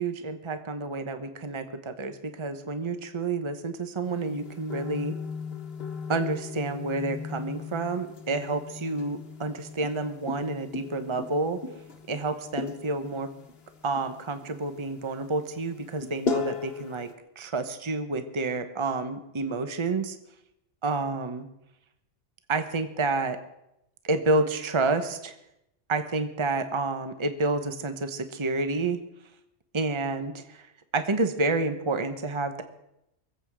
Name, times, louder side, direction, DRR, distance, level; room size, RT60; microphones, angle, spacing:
voice 1, 0.0-5.2 6.1-11.6 12.1-13.3 13.8-17.1 17.4-20.2 20.8-21.5 22.5-23.4 24.0-25.3 25.9-29.0 29.7-30.7 30.9-32.6, right 3 dB, 25° right, 9 dB, 1.0 m, -29 dB
sound 1, 4.0-17.1, left 5 dB, 55° left, 1.6 m, -37 dB
23.5 x 8.4 x 6.2 m, 0.84 s
omnidirectional pair, 1.2 m